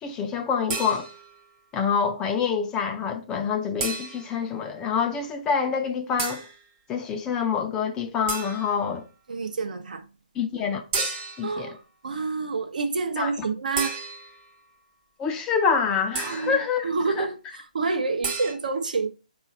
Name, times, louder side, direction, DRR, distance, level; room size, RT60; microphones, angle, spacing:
voice 1, 0.0-1.1 1.7-6.4 6.9-9.0 10.4-11.1 11.4-11.8 13.2-13.3 15.2-16.9 17.2-17.3, left 6 dB, 15° left, 0.4 m, -26 dB
sound 1, 0.7-1.4 3.8-4.4 6.2-6.6 8.3-8.8 10.9-11.6 13.8-14.5 16.1-16.6 18.2-18.5, right 4 dB, 20° right, 0.6 m, -32 dB
voice 2, 9.3-10.0 11.4-14.0 16.2-19.1, right 4 dB, 70° right, 0.6 m, -28 dB
3.9 x 2.4 x 4.2 m
hypercardioid pair, 150°, 5 cm